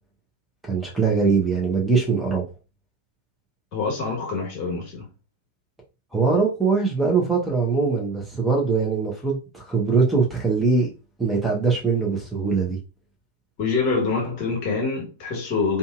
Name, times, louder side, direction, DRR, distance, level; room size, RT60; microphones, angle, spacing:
voice 1, 0.7-2.4 6.1-10.9 11.2-12.8, right 4 dB, 5° right, 0.9 m, -22 dB
voice 2, 3.7-5.1 13.6-15.8, left 4 dB, 45° left, 1.2 m, -25 dB
2.6 x 2.6 x 2.4 m
figure-of-eight pair, 90°, 0 cm